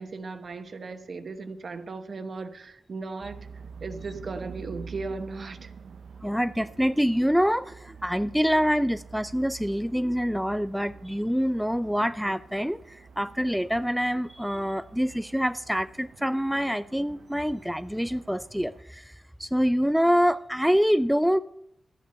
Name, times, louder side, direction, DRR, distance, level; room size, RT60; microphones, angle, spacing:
voice 1, 0.0-3.4 3.8-5.7, right 3 dB, 55° right, 8 dB, 1.1 m, -37 dB
sound 1, 3.2-18.8, right 5 dB, 85° right, 0.6 m, -47 dB
voice 2, 6.2-19.1 19.4-21.4, equal, ahead, 12 dB, 0.4 m, -26 dB
12.5 x 8.4 x 6.8 m, 0.75 s
cardioid pair, 85°, 0 cm